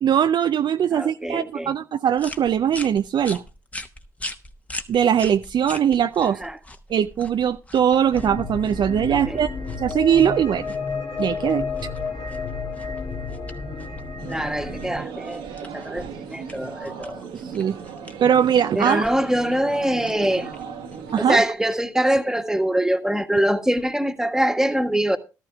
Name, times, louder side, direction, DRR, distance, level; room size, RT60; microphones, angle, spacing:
voice 1, 0.0-3.4 4.9-6.4 6.9-9.5 9.8-10.7 11.2-11.7 17.5-17.8 18.2-19.0 21.1-21.4, right 9 dB, 50° right, 0.5 m, -21 dB
voice 2, 0.9-1.7 6.4-6.6 9.1-9.4 14.3-17.5 18.7-20.5 21.2-25.2, right 1 dB, 5° right, 1.4 m, -24 dB
sound 1, 2.2-21.7, left 1 dB, 15° left, 1.1 m, -42 dB
sound 2, 8.1-15.0, left 4 dB, 45° left, 2.2 m, -31 dB
sound 3, 14.2-21.4, right 6 dB, 70° right, 1.5 m, -37 dB
14.5 x 13.0 x 2.3 m
hypercardioid pair, 45°, 10 cm